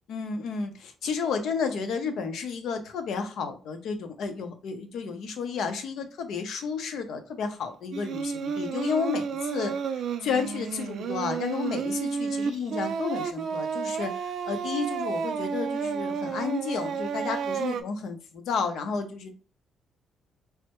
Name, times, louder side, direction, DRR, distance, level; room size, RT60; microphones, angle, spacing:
voice 1, 0.1-9.8 10.2-19.3, left 5 dB, 75° left, 7 dB, 0.6 m, -32 dB
Singing, 7.9-17.8, right 6 dB, 70° right, 0.3 m, -31 dB
3.3 x 2.1 x 2.9 m, 0.38 s
cardioid pair, 85°, 0 cm